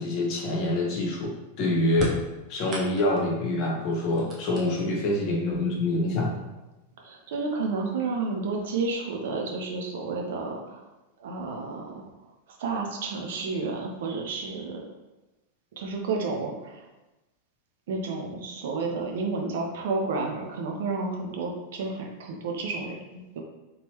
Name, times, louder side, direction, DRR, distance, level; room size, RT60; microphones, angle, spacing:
voice 1, 0.0-1.3 1.6-2.1 2.5-6.3, left 1 dB, 40° left, -2 dB, 1.1 m, -26 dB
sound 1, 2.0-3.3 3.9-5.1 6.1-6.2 7.2-7.3 7.8-8.3, right 1 dB, 30° right, 1.0 m, -35 dB
voice 2, 7.0-10.8 11.2-12.1 12.6-14.9 15.8-16.9 17.9-23.4, right 3 dB, 55° right, 1 dB, 0.7 m, -31 dB
4.3 x 3.3 x 2.9 m, 1.0 s
figure-of-eight pair, 90°, 0 cm